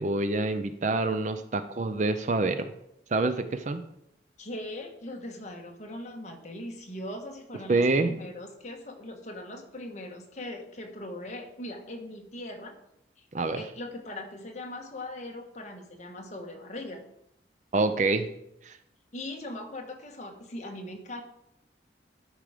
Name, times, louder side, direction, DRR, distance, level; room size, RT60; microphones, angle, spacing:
voice 1, 0.0-2.7 3.1-3.8 7.7-8.1 13.3-13.6 17.7-18.2 18.6-18.8, right 3 dB, 40° right, 9 dB, 0.5 m, -26 dB
voice 2, 4.4-12.8 13.2-13.3 13.5-17.0 19.1-21.2, left 1 dB, 40° left, 2 dB, 1.4 m, -40 dB
12.5 x 4.8 x 5.0 m, 0.79 s
head